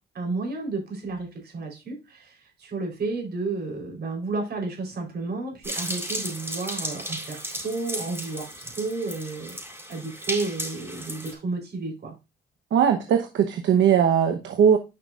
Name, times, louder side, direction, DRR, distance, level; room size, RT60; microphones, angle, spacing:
voice 1, 0.1-9.6 9.9-12.1, right 3 dB, 55° right, 1 dB, 3.9 m, -32 dB
sound 1, 5.6-11.3, right 1 dB, 10° right, 4.1 m, -34 dB
voice 2, 12.7-14.8, right 8 dB, 70° right, 6 dB, 1.0 m, -20 dB
10.0 x 5.9 x 2.5 m, 0.28 s
cardioid pair, 90°, 20 cm